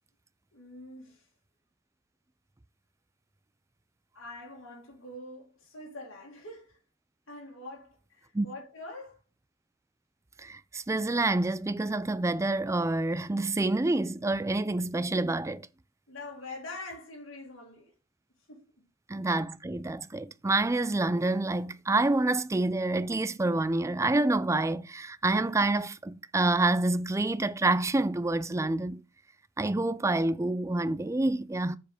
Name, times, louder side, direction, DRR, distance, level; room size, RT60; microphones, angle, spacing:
voice 1, 0.5-1.2 4.1-6.8 7.3-9.2 16.1-17.9 18.5-18.7, left 2 dB, 80° left, 2.4 m, -44 dB
voice 2, 10.4-15.7 19.1-29.0 29.6-31.8, right 2 dB, 15° right, 0.4 m, -27 dB
7.6 x 4.6 x 4.9 m
head